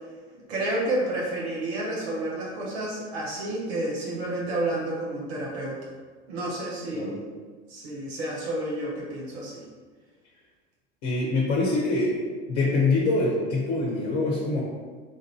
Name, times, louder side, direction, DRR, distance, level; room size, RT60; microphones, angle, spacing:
voice 1, 0.3-5.8 6.3-7.2 7.7-9.6, right 1 dB, 65° right, -4 dB, 1.1 m, -30 dB
voice 2, 11.0-12.1 12.5-14.6, left 3 dB, 65° left, -5 dB, 1.0 m, -24 dB
3.6 x 2.6 x 4.3 m, 1.5 s
hypercardioid pair, 80°, 35 cm